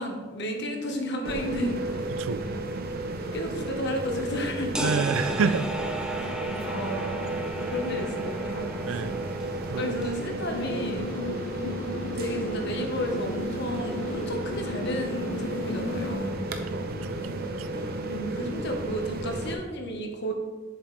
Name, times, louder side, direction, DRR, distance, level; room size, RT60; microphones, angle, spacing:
voice 1, 0.0-2.1 3.3-5.1 6.2-6.4 6.6-7.4 7.7-9.1 9.8-11.1 12.1-16.5 17.7-20.3, equal, 60° left, 3 dB, 1.2 m, -33 dB
sound 1, 1.2-19.5, right 2 dB, 50° right, 0.7 m, -33 dB
sound 2, 4.7-10.3, right 1 dB, 5° right, 0.5 m, -36 dB
voice 2, 4.8-5.6 8.9-9.2 9.7-9.9 16.7-17.7, right 5 dB, 85° right, 14 dB, 0.4 m, -29 dB
sound 3, 10.5-16.1, left 2 dB, 75° left, 0.6 m, -36 dB
7.3 x 7.1 x 3.3 m, 1.3 s
head